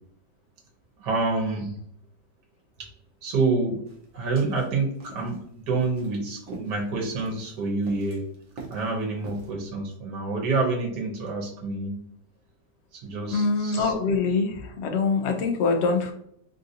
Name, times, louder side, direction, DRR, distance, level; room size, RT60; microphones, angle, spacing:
voice 1, 1.0-1.7 2.8-2.9 3.2-3.8 4.1-5.4 5.7-8.2 8.7-12.0 12.9-13.9, right 3 dB, 85° right, -1 dB, 1.4 m, -27 dB
sound 1, 3.9-9.5, right 3 dB, 60° right, 1.1 m, -45 dB
voice 2, 13.3-16.1, left 4 dB, 75° left, 4 dB, 0.6 m, -24 dB
3.6 x 2.6 x 2.6 m, 0.67 s
omnidirectional pair, 1.8 m